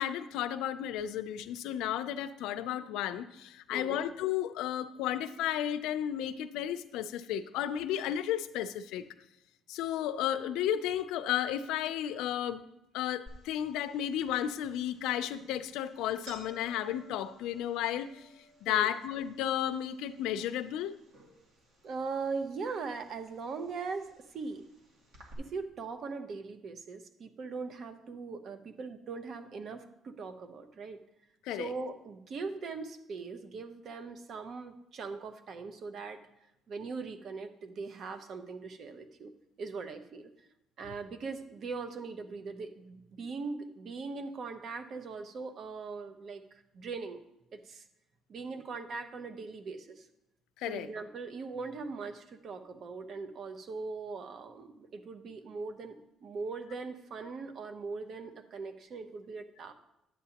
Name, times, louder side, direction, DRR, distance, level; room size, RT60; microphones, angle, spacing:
voice 1, 0.0-9.1 9.7-12.6 12.9-18.2 18.6-20.9 31.4-31.7 50.6-50.9, left 11 dB, 90° left, 12 dB, 0.4 m, -33 dB
voice 2, 3.7-4.0 18.7-18.9 21.8-24.6 25.4-31.0 31.5-36.2 36.7-39.3 39.6-40.3 40.8-47.2 47.5-47.8 48.3-50.1 50.6-59.7, right 4 dB, 50° right, 8 dB, 0.8 m, -40 dB
sound 1, 13.3-25.3, right 1 dB, 75° right, 2.3 m, -57 dB
10.0 x 8.2 x 2.9 m, 0.87 s
cardioid pair, 125°, 0 cm